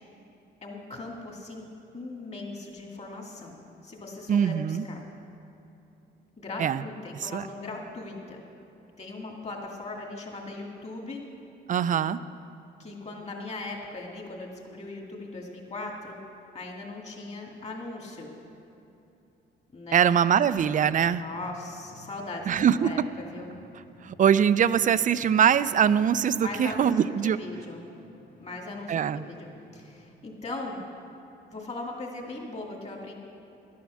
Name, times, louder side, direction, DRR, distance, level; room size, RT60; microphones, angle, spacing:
voice 1, 0.6-1.7 1.9-3.6 3.8-5.0 6.4-8.4 9.0-11.2 12.8-16.2 16.5-18.3 19.7-20.0 21.1-23.5 26.4-26.9 27.2-27.8 28.4-30.8 31.5-33.1, left 2 dB, 35° left, 0 dB, 2.3 m, -39 dB
voice 2, 4.3-4.8 6.6-6.8 7.2-7.5 11.7-12.2 19.9-21.2 22.5-22.9 24.0-27.4 28.9-29.3, right 8 dB, 40° right, 15 dB, 0.4 m, -22 dB
sound 1, 20.8-30.1, left 2 dB, 70° left, 2.4 m, -54 dB
12.0 x 9.4 x 6.3 m, 2.8 s
cardioid pair, 90°, 20 cm